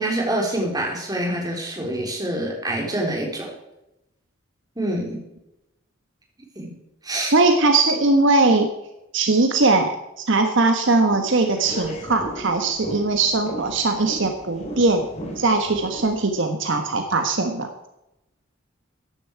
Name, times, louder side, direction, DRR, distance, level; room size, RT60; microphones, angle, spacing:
voice 1, 0.0-3.5 4.8-5.2 6.6-6.7 7.0-7.3, right 1 dB, 20° right, 0 dB, 3.7 m, -26 dB
voice 2, 7.3-8.7 9.1-15.1 15.4-17.7, right 3 dB, 65° right, 6 dB, 1.3 m, -20 dB
sound 1, 11.0-16.2, right 1 dB, 30° left, 3.2 m, -36 dB
14.5 x 10.5 x 4.6 m, 0.88 s
head